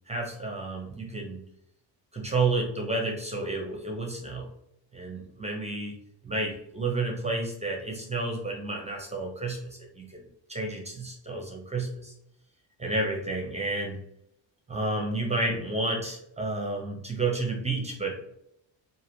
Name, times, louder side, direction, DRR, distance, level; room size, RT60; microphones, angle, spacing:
voice 1, 0.1-1.4 2.1-4.5 4.9-5.9 6.2-10.2 10.5-12.1 12.8-14.0 14.7-18.1, right 2 dB, 15° right, 0 dB, 0.5 m, -31 dB
2.9 x 2.6 x 2.6 m, 0.75 s
cardioid pair, 105°, 45 cm